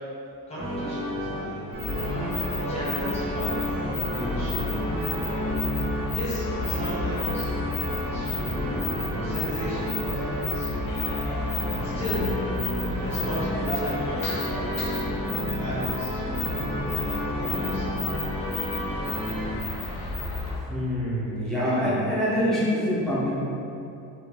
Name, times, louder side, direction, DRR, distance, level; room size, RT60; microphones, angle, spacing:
voice 1, 0.5-1.6 2.7-5.2 5.8-7.5 7.8-8.7 9.2-10.7 11.8-12.3 12.9-15.1 15.5-17.9, equal, 20° left, -10 dB, 0.8 m, -37 dB
sound 1, 0.6-19.5, equal, 50° right, 0.6 m, -31 dB
sound 2, 1.7-20.6, left 3 dB, 65° left, 0.5 m, -32 dB
voice 2, 20.7-23.3, equal, ahead, -10 dB, 0.4 m, -25 dB
2.3 x 2.1 x 3.1 m, 2.7 s
cardioid pair, 175°, 34 cm